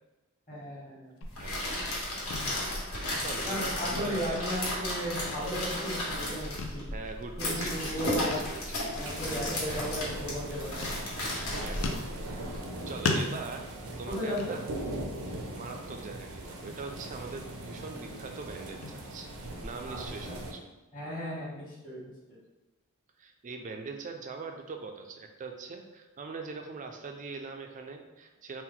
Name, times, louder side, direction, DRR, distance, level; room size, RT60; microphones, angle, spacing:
voice 1, 0.5-1.1 3.4-6.8 7.4-8.4 8.9-10.9 14.1-14.5 19.9-20.0 20.2-20.4 20.9-22.1, equal, 35° left, -12 dB, 1.3 m, -35 dB
sound 1, 1.2-12.6, left 1 dB, 85° left, 1.3 m, -34 dB
sound 2, 1.2-2.0 2.3-2.7 3.0-3.6 3.9-5.0 5.3-6.0 6.6-6.9 7.2-7.3 8.3-8.6 8.9-9.0 9.8-10.5 10.8-11.5 11.8-12.7 13.1-15.0 15.4-15.7 16.1-16.2 16.7-17.4 17.7-20.3, left 3 dB, 70° left, 0.5 m, -38 dB
voice 2, 1.4-2.0 3.2-5.2 6.9-8.9 9.6-9.9 11.6-12.4 12.9-13.7 14.0-14.7 15.5-19.3 19.6-20.7 23.2-28.6, right 4 dB, 35° right, 4 dB, 0.4 m, -42 dB
sound 3, 9.0-20.5, right 1 dB, 80° right, 0.6 m, -40 dB
4.4 x 2.2 x 3.8 m, 1.1 s
head